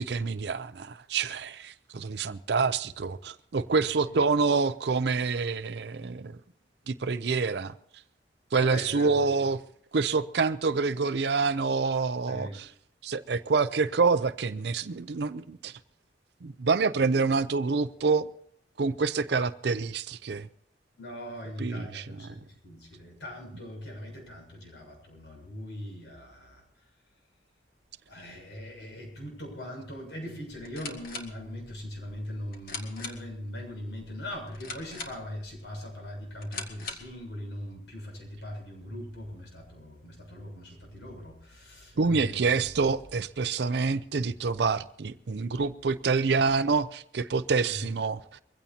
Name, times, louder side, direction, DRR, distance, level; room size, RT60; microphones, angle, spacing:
voice 1, 0.0-6.4 6.9-7.7 8.5-9.6 9.9-12.7 13.0-15.7 16.4-18.3 18.8-20.5 21.6-22.3 42.0-48.4, right 4 dB, 60° right, 0.5 m, -27 dB
voice 2, 8.5-9.5 12.3-12.6 21.0-26.6 28.1-42.6 47.7-47.8, equal, 70° left, 7.1 m, -40 dB
sound 1, 30.5-37.2, left 3 dB, 50° left, 2.2 m, -43 dB
22.5 x 16.0 x 2.8 m
head